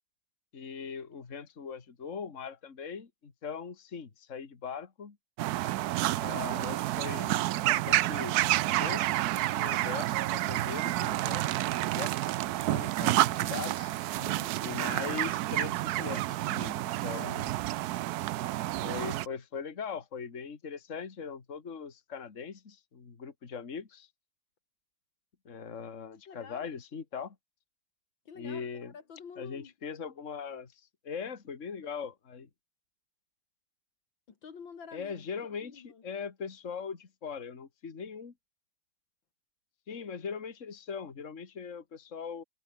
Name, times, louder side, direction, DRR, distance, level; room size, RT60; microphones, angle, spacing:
voice 1, 0.5-5.2 6.2-7.4 7.7-8.4 8.8-11.5 11.9-13.9 14.6-17.5 18.8-24.1 25.5-27.4 28.4-28.9 29.4-32.5 34.9-38.3 39.9-42.4, left 6 dB, 40° left, 2.3 m, -40 dB
sound 1, 5.4-19.3, right 16 dB, 85° right, 0.8 m, -29 dB
voice 2, 14.2-14.5 18.9-19.0 26.3-26.7 28.3-29.7 34.3-35.2 35.5-36.0, left 6 dB, 70° left, 2.8 m, -48 dB
omnidirectional pair, 2.2 m